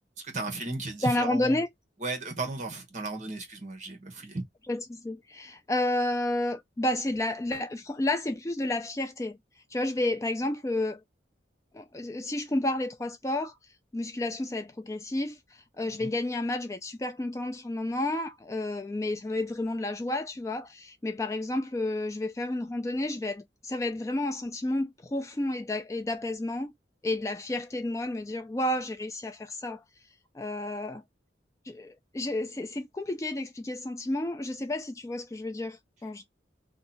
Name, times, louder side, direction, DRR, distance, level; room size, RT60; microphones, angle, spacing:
voice 1, 0.2-1.6 2.0-4.5 16.0-16.1, right 2 dB, 40° right, 0.9 m, -35 dB
voice 2, 1.0-1.7 4.7-9.4 9.7-11.0 11.7-13.5 13.9-26.7 27.0-29.8 30.3-31.0 31.7-36.2, left 1 dB, 15° left, 0.3 m, -31 dB
2.7 x 2.2 x 4.0 m
head